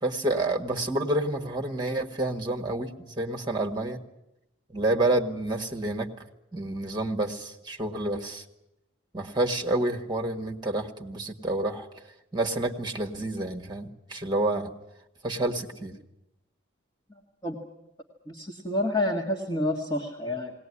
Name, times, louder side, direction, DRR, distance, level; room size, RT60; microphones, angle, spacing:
voice 1, 0.0-4.0 4.7-6.1 6.5-8.4 9.1-11.9 12.3-14.7 15.2-15.9, right 2 dB, 20° right, 3 dB, 1.7 m, -29 dB
voice 2, 18.3-20.5, left 1 dB, 20° left, -3 dB, 1.8 m, -28 dB
20.5 x 18.5 x 9.8 m, 0.88 s
head